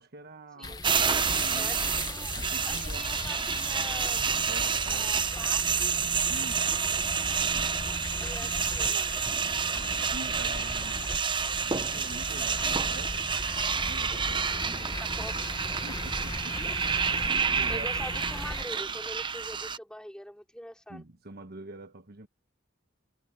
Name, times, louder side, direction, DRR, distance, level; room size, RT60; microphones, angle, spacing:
voice 1, 0.0-1.8 2.3-3.1 4.1-5.2 6.3-6.8 8.4-8.5 9.7-11.1 11.7-13.3 13.8-15.3 15.8-17.9 20.9-22.3, right 2 dB, 55° right, 1.3 m, -45 dB
sound 1, 0.6-18.6, left 2 dB, 20° left, 0.8 m, -38 dB
sound 2, 0.8-19.8, right 6 dB, 25° right, 0.7 m, -29 dB
voice 2, 2.7-4.2 4.9-5.9 8.2-9.1 14.8-15.5 17.7-21.0, equal, 5° left, 5.0 m, -43 dB
head